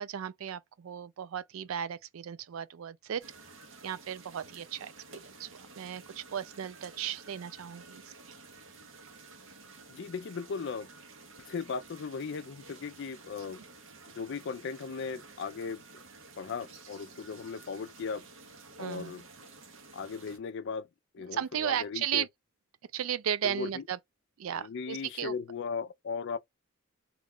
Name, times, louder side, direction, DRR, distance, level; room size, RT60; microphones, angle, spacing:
voice 1, 0.0-3.2 3.8-8.0 8.3-8.4 18.8-19.1 21.3-22.3 22.9-24.0 24.4-25.3, right 9 dB, 85° right, 0.4 m, -35 dB
sound 1, 3.2-20.4, right 3 dB, 65° right, 1.0 m, -52 dB
voice 2, 9.9-10.9 11.5-13.6 14.1-15.8 16.4-18.3 18.8-19.3 19.9-20.9 21.1-22.3 23.4-23.8 24.6-26.4, left 5 dB, 60° left, 0.4 m, -37 dB
3.1 x 2.3 x 3.6 m
head